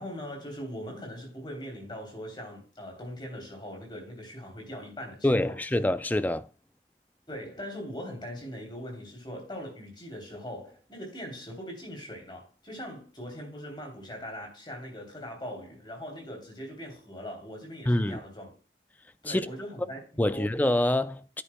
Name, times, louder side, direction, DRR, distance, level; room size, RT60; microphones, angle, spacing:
voice 1, 0.0-5.5 7.3-18.5 19.2-20.5, equal, 25° left, 3.2 m, -41 dB
voice 2, 5.2-6.5 17.9-18.2 19.2-19.5 20.2-21.4, left 1 dB, 10° left, 0.3 m, -26 dB
9.8 x 8.6 x 2.2 m
head